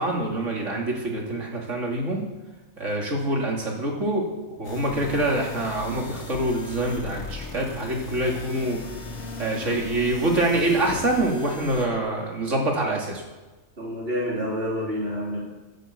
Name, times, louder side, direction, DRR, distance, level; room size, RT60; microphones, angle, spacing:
voice 1, 0.0-2.2 2.8-4.3 4.6-8.8 9.4-13.2, right 1 dB, 60° right, -1 dB, 3.1 m, -25 dB
sound 1, 4.6-11.9, left 2 dB, 80° left, 2.1 m, -37 dB
voice 2, 13.8-15.4, equal, 45° right, -5 dB, 3.6 m, -28 dB
12.5 x 9.0 x 8.0 m, 1.2 s
omnidirectional pair, 1.4 m